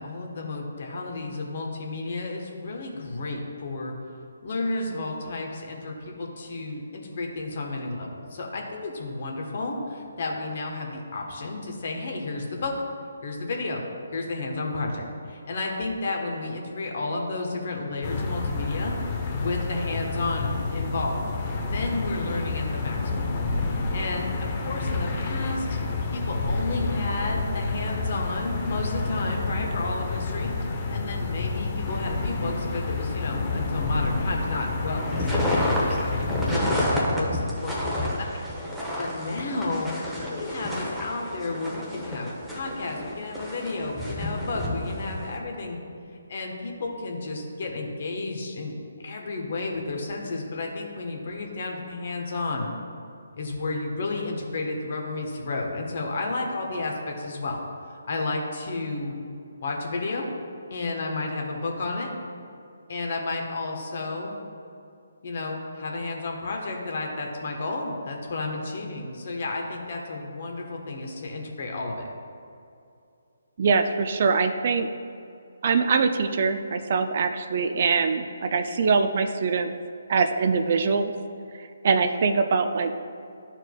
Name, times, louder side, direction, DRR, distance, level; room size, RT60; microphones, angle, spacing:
voice 1, 0.0-3.9 4.4-12.7 13.2-13.8 14.1-21.2 21.6-25.8 26.1-38.3 39.0-39.9 40.3-45.8 46.3-48.7 49.0-52.7 53.4-57.6 58.1-59.1 59.6-60.3 60.7-62.1 62.9-64.3 65.2-72.1, left 2 dB, 50° left, 0 dB, 1.2 m, -32 dB
sound 1, 18.0-36.6, left 3 dB, 35° left, 0.8 m, -29 dB
sound 2, 35.0-45.4, left 1 dB, ahead, 0.9 m, -30 dB
voice 2, 73.6-74.9 75.6-79.7 80.1-81.1 81.6-83.0, right 5 dB, 50° right, 8 dB, 0.4 m, -23 dB
12.0 x 4.4 x 2.3 m, 2.5 s
figure-of-eight pair, 150°, 0 cm